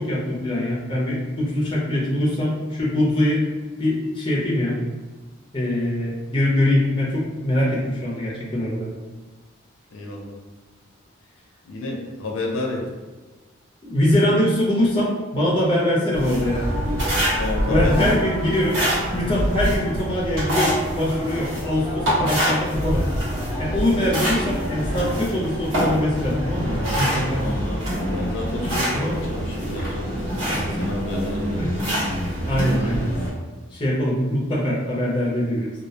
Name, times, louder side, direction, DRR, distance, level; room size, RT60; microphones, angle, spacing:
voice 1, 0.0-3.5 3.8-4.8 5.5-8.9 13.8-16.8 17.7-18.8 19.1-23.0 23.6-27.4 28.9-29.1 31.6-31.7 32.5-33.1 33.7-35.7, left 1 dB, 25° left, -6 dB, 0.5 m, -23 dB
voice 2, 9.9-10.4 11.7-12.9 17.4-18.2 27.3-31.6, left 2 dB, 80° left, -1 dB, 0.5 m, -31 dB
sound 1, 16.1-33.3, equal, 85° right, 1.0 m, -25 dB
2.2 x 2.1 x 2.7 m, 1.3 s
head